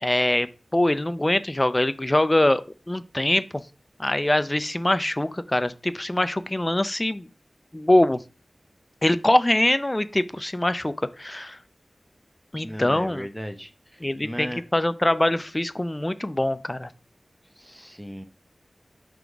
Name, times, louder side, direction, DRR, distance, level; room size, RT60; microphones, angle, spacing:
voice 1, 0.0-2.6 2.9-3.6 4.0-7.3 7.7-8.2 9.0-11.6 12.5-13.3 14.0-16.9, left 1 dB, 25° left, 14 dB, 0.5 m, -23 dB
voice 2, 12.6-14.6 17.4-18.2, equal, ahead, 7 dB, 0.9 m, -37 dB
5.7 x 3.9 x 4.8 m, 0.34 s
wide cardioid pair, 55°, 0 cm